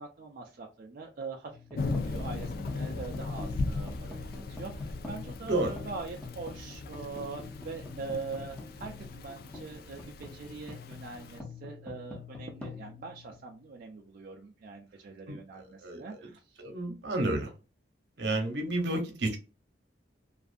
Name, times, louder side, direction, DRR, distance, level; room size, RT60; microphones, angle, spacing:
voice 1, 0.0-1.5 1.8-16.6 18.2-18.4, right 4 dB, 50° right, 0.4 m, -43 dB
sound 1, 1.5-13.9, left 3 dB, 5° left, 0.6 m, -46 dB
Thunder / Rain, 1.8-11.4, left 3 dB, 55° left, 0.3 m, -38 dB
voice 2, 15.3-16.3 16.6-17.5 18.2-19.4, right 2 dB, 70° right, 0.8 m, -31 dB
2.5 x 2.4 x 2.4 m
head